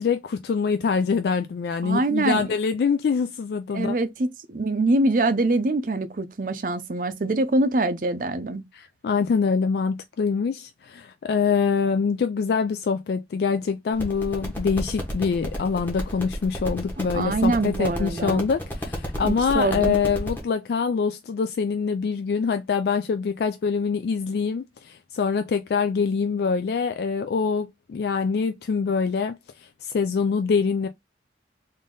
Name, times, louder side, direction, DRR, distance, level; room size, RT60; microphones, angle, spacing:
voice 1, 0.0-4.0 8.7-30.9, left 5 dB, 65° left, 0.3 m, -25 dB
voice 2, 1.8-2.5 3.7-8.6 17.1-18.4 19.2-19.9, right 2 dB, 50° right, 0.5 m, -24 dB
sound 1, 13.9-20.4, equal, 10° left, 1.2 m, -32 dB
3.6 x 2.6 x 3.7 m
head